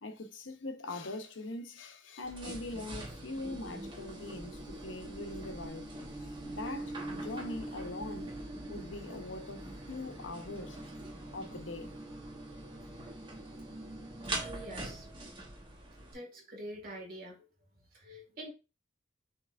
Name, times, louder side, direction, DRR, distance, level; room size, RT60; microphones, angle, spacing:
voice 1, 0.0-5.9 6.4-8.3 8.7-10.8 11.3-12.0, left 2 dB, 75° left, 0.8 m, -42 dB
sound 1, 2.2-16.1, right 1 dB, 25° right, 1.0 m, -43 dB
voice 2, 14.4-15.1 16.1-17.4 17.9-18.5, right 1 dB, 50° right, 1.7 m, -45 dB
6.6 x 3.1 x 2.4 m
head